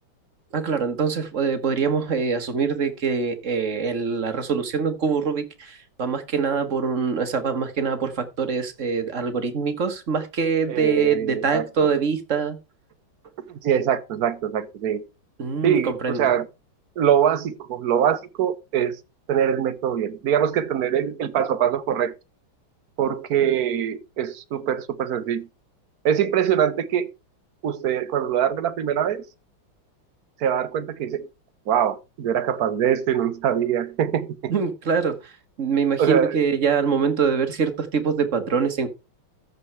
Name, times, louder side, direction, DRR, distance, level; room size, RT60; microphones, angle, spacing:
voice 1, 0.5-12.6 15.4-16.3 34.5-35.3 35.6-38.9, right 5 dB, 40° right, 1.5 m, -24 dB
voice 2, 10.7-11.6 13.5-15.0 15.6-16.5 17.0-19.0 19.3-22.1 23.0-25.5 26.0-27.1 27.6-29.2 30.4-31.3 31.7-34.5 36.0-36.4, right 9 dB, 60° right, 1.2 m, -23 dB
14.0 x 5.5 x 4.7 m
omnidirectional pair, 2.2 m